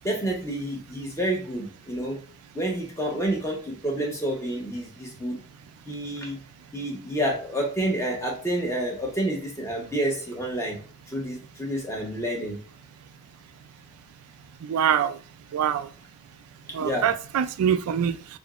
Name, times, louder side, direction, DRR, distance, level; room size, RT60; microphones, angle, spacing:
voice 1, 0.0-2.2 2.5-5.4 5.9-6.4 6.7-10.8 11.1-12.6 16.8-17.1, right 1 dB, 15° left, 0 dB, 0.9 m, -29 dB
voice 2, 14.7-15.1 15.5-15.9 16.7-18.2, right 8 dB, 85° right, 12 dB, 0.3 m, -24 dB
3.7 x 3.5 x 2.4 m, 0.42 s
head